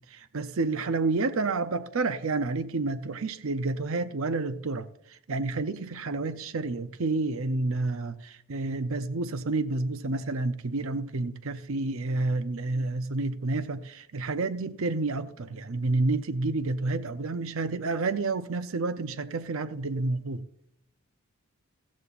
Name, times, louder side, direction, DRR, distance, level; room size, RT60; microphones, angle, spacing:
voice 1, 0.1-20.4, right 3 dB, 65° right, 0.6 m, -29 dB
15.0 x 14.5 x 2.5 m
head